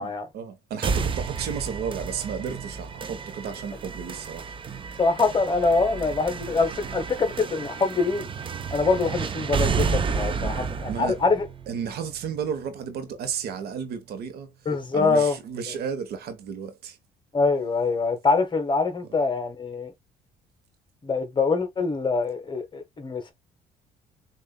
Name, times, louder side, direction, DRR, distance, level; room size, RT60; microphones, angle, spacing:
voice 1, 0.0-4.5 5.9-6.1 7.1-7.3 10.4-11.2 11.7-14.5 14.9-17.0, right 7 dB, 70° right, 1.1 m, -33 dB
sound 1, 0.8-12.8, right 5 dB, 30° right, 0.6 m, -31 dB
voice 2, 5.0-8.3 8.7-11.4 14.6-15.4 17.3-19.9 21.0-23.3, left 4 dB, 30° left, 1.3 m, -24 dB
6.6 x 2.6 x 2.3 m
cardioid pair, 110°, 17 cm